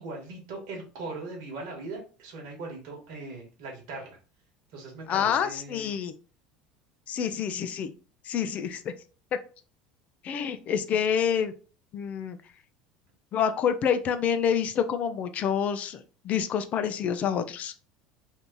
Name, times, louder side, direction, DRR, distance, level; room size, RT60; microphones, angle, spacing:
voice 1, 0.0-4.2 4.7-5.9, right 3 dB, 70° right, 0 dB, 1.2 m, -40 dB
voice 2, 5.1-6.1 7.1-7.9 8.3-8.9 10.2-11.5 11.9-12.4 13.3-17.7, left 8 dB, 45° left, 10 dB, 0.5 m, -27 dB
2.8 x 2.7 x 3.6 m, 0.37 s
hypercardioid pair, 85°, 3 cm